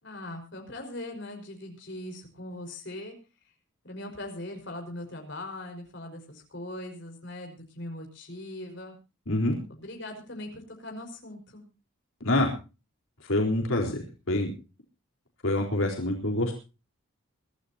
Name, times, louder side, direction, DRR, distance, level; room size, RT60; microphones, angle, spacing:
voice 1, 0.0-3.2 3.8-8.9 9.7-11.7, left 1 dB, 55° left, 3 dB, 5.3 m, -40 dB
voice 2, 13.3-14.0 14.3-14.5 15.4-16.6, left 1 dB, 80° left, 0 dB, 4.2 m, -26 dB
24.5 x 13.5 x 2.9 m, 0.32 s
head